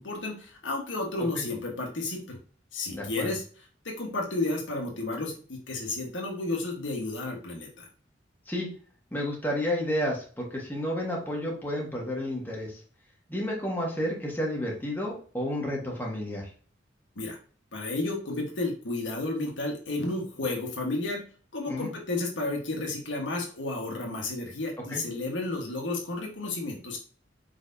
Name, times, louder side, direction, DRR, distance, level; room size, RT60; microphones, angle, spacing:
voice 1, 0.0-2.4 2.7-3.4 3.8-7.8 17.2-17.4 17.7-21.2 21.5-27.0, left 2 dB, 85° left, 0 dB, 1.3 m, -32 dB
voice 2, 2.9-3.3 8.5-8.7 9.1-12.8 13.3-16.5 21.7-21.9 24.9-25.0, equal, 10° left, -2 dB, 1.4 m, -31 dB
4.8 x 4.0 x 2.7 m, 0.41 s
head